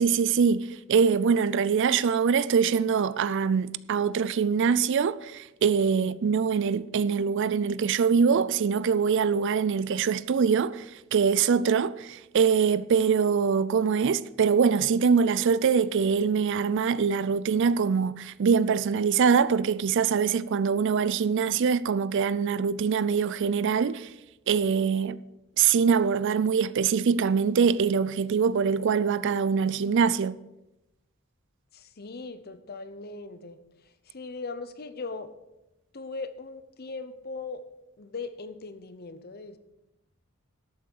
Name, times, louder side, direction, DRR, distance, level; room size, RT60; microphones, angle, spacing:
voice 1, 0.0-10.9 11.1-24.1 24.5-25.2 25.6-30.4, right 6 dB, 60° right, 0.4 m, -23 dB
voice 2, 6.0-6.4 31.7-35.3 35.9-37.6 38.0-39.6, left 3 dB, 45° left, 0.7 m, -39 dB
12.0 x 8.5 x 4.6 m
head